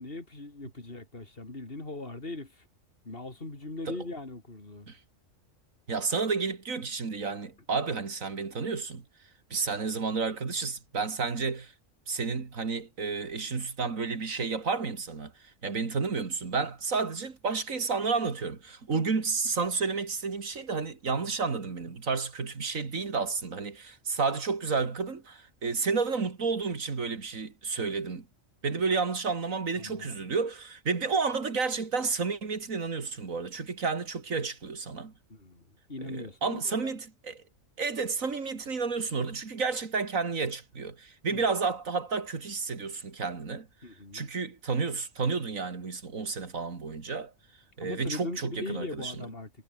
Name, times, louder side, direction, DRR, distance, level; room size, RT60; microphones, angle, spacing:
voice 1, 0.0-2.6 3.0-4.9 29.8-30.2 35.3-35.6 35.9-36.9 41.3-41.5 43.8-44.3 47.8-49.5, left 2 dB, 45° left, 4.2 m, -40 dB
voice 2, 5.9-9.0 9.5-11.7 12.1-15.3 15.6-28.3 28.6-35.1 36.0-37.4 37.8-43.7 44.1-47.3 47.8-49.3, right 4 dB, 80° right, 2.8 m, -31 dB
omnidirectional pair, 1.4 m